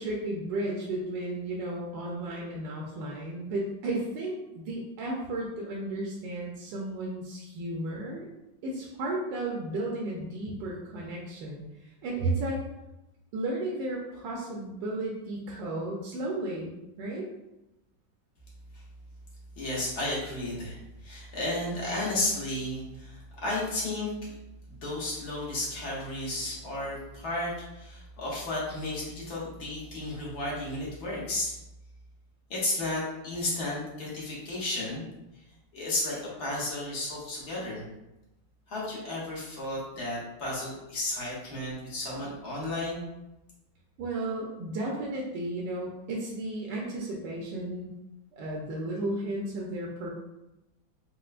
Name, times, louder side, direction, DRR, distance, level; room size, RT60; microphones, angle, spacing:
voice 1, 0.0-8.3 8.6-11.6 12.0-12.6 13.3-17.3 44.0-47.9 48.3-50.1, right 2 dB, 75° right, -2 dB, 1.2 m, -33 dB
voice 2, 19.6-24.3 24.7-31.5 32.5-35.0 35.7-37.8 38.7-43.0, left 1 dB, 60° left, -6 dB, 1.4 m, -33 dB
4.2 x 2.1 x 2.4 m, 0.93 s
omnidirectional pair, 2.1 m